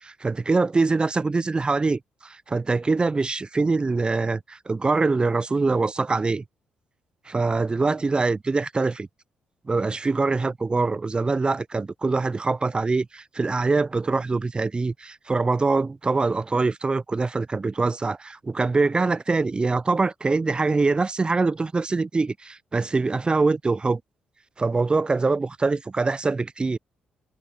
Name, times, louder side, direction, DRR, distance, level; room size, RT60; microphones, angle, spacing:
voice 1, 0.0-6.4 7.3-9.1 9.7-24.0 24.6-26.8, right 3 dB, 25° right, 0.4 m, -24 dB
hypercardioid pair, 45°, 4 cm